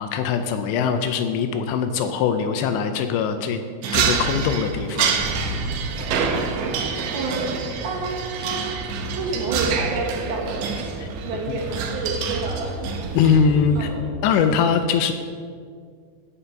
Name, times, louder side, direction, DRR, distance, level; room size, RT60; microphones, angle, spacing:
voice 1, 0.0-3.6 3.9-5.2 11.0-11.1 11.5-11.6 13.1-13.9 14.2-15.1, left 6 dB, 80° left, 8 dB, 2.7 m, -22 dB
sound 1, 3.8-13.5, right 6 dB, 80° right, 3.3 m, -27 dB
sound 2, 5.2-13.9, right 1 dB, 20° right, 1.9 m, -34 dB
voice 2, 7.1-7.6 7.8-8.6 9.1-10.6 11.2-12.8 13.8-14.1, right 3 dB, 65° right, 0 dB, 2.8 m, -29 dB
16.5 x 5.7 x 5.7 m, 2.1 s
omnidirectional pair, 5.3 m